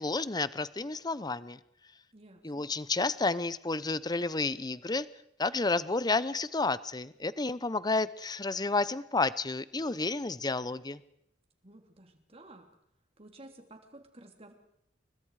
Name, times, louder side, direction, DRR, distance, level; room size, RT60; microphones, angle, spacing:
voice 1, 0.0-1.6 2.4-5.1 5.4-11.0, left 3 dB, 20° left, 16 dB, 0.7 m, -31 dB
voice 2, 2.1-2.7 11.6-12.7 13.2-14.5, right 2 dB, 35° right, 5 dB, 3.2 m, -53 dB
29.5 x 22.5 x 4.9 m, 0.76 s
head